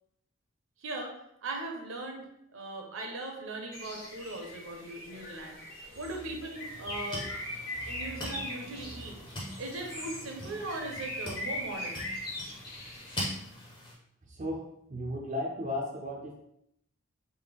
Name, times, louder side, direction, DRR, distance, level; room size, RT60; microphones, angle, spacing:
voice 1, 0.8-1.1 1.4-2.3 2.5-7.3 7.9-9.2 9.6-12.0, right 2 dB, 75° right, 2 dB, 0.7 m, -39 dB
Bird, 3.7-13.3, left 1 dB, 45° left, 1.4 m, -41 dB
sound 1, 6.6-13.9, left 1 dB, 20° left, 0.7 m, -42 dB
voice 2, 14.2-14.6 14.9-16.4, left 1 dB, 35° right, -1 dB, 0.4 m, -35 dB
3.3 x 2.2 x 3.5 m, 0.76 s
head